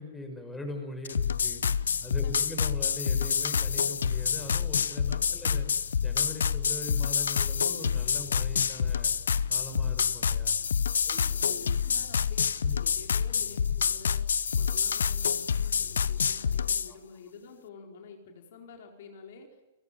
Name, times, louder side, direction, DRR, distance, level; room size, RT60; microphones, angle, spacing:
voice 1, 0.0-1.6 2.0-5.7 6.0-9.1 9.5-10.6 11.0-11.6 12.6-12.7, left 2 dB, 10° left, 5 dB, 6.0 m, -41 dB
sound 1, 1.0-16.9, left 7 dB, 85° left, 0.8 m, -27 dB
voice 2, 1.9-2.4 5.4-5.5 11.0-19.6, left 5 dB, 65° left, 3 dB, 4.5 m, -49 dB
30.0 x 17.0 x 9.3 m, 1.0 s
hypercardioid pair, 125°, 0 cm